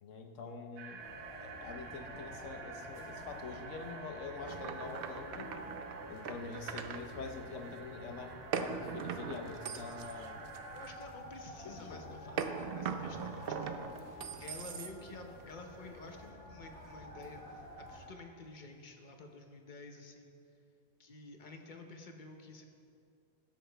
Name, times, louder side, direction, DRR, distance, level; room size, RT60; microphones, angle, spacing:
voice 1, 0.0-1.1 1.4-5.6 6.1-10.4 11.6-12.2, left 4 dB, 70° left, 5 dB, 1.2 m, -45 dB
sound 1, 0.8-11.0, right 6 dB, 90° right, 1.1 m, -51 dB
sound 2, 1.0-18.1, left 1 dB, 25° left, 2.0 m, -50 dB
sound 3, 4.5-7.0 8.5-11.1 12.4-15.2, right 6 dB, 60° right, 0.6 m, -40 dB
voice 2, 10.7-20.3 21.0-22.6, left 3 dB, 45° left, 4 dB, 0.8 m, -51 dB
14.0 x 7.6 x 3.4 m, 2.5 s
omnidirectional pair, 1.4 m